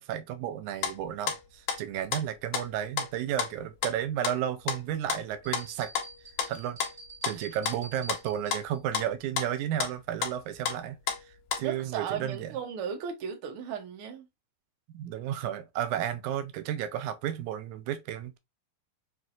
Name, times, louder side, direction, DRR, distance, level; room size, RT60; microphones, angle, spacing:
voice 1, 0.0-5.9 6.5-6.8 7.2-12.5 14.9-18.4, right 10 dB, 85° right, 2.0 m, -33 dB
sound 1, 0.8-1.4 1.7-2.2 2.5-3.1 3.4-3.9 4.2-5.7 5.9-8.2 8.5-10.8 11.1-11.7, left 7 dB, 70° left, 1.8 m, -32 dB
sound 2, 5.4-8.8, right 3 dB, 25° right, 1.1 m, -48 dB
voice 2, 11.6-14.3, right 7 dB, 65° right, 1.4 m, -36 dB
5.7 x 2.6 x 2.5 m
omnidirectional pair, 3.4 m